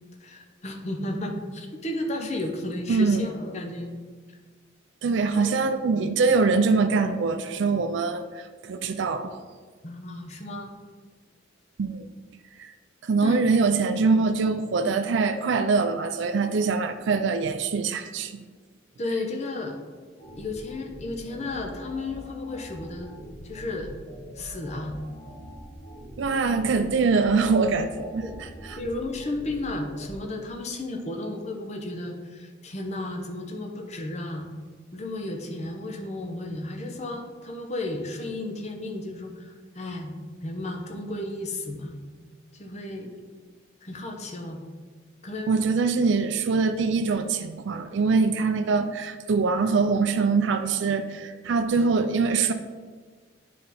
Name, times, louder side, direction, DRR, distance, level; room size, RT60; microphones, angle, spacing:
voice 1, 0.2-3.9 5.3-5.5 9.8-10.8 13.2-13.4 19.0-19.8 20.4-23.1 23.4-23.9 24.4-24.9 28.2-28.3 28.8-34.5 34.9-40.1 40.4-42.0 42.5-43.1 43.8-44.6 45.2-45.6 51.7-51.8, left 2 dB, 35° left, 2 dB, 0.8 m, -33 dB
voice 2, 2.9-3.3 5.0-9.3 11.8-12.1 12.6-12.7 13.0-18.4 26.2-28.8 45.5-52.5, right 4 dB, 70° right, 8 dB, 0.4 m, -23 dB
sound 1, 20.2-30.2, equal, 70° left, 1.9 m, -43 dB
8.6 x 4.2 x 4.1 m, 1.5 s
head